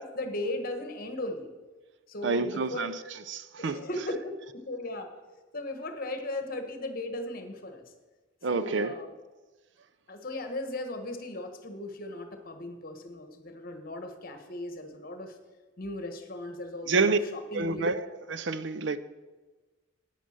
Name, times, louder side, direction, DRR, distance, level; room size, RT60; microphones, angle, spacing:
voice 1, 0.0-1.5 2.1-2.9 3.6-5.1 5.5-7.8 8.5-9.1 10.1-15.4 15.8-17.9, left 1 dB, 45° left, 1.4 m, -37 dB
voice 2, 2.2-3.0 3.3-3.8 8.4-8.9 16.9-17.2 17.5-19.0, right 4 dB, 65° right, 0.6 m, -28 dB
9.3 x 9.1 x 6.5 m
head